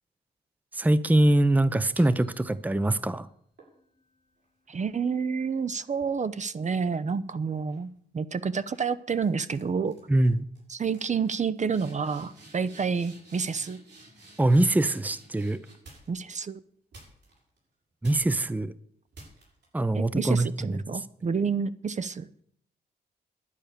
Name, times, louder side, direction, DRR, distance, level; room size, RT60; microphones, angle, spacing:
voice 1, 0.7-3.3 10.1-10.5 14.4-15.6 18.0-18.7 19.7-21.0, right 1 dB, 10° right, 15 dB, 0.7 m, -23 dB
sound 1, 1.9-3.0 3.6-7.1 7.5-7.9 8.7-8.9 9.1-9.6 9.9-10.3 10.5-10.6 10.9-16.3 16.9-17.6 18.0-18.5 19.1-19.6, right 2 dB, 80° right, 6.9 m, -53 dB
voice 2, 4.7-10.0 10.7-13.8 16.1-16.6 19.9-22.4, right 5 dB, 45° right, 13 dB, 0.7 m, -29 dB
11.0 x 9.1 x 6.8 m, 0.66 s
cardioid pair, 70°, 18 cm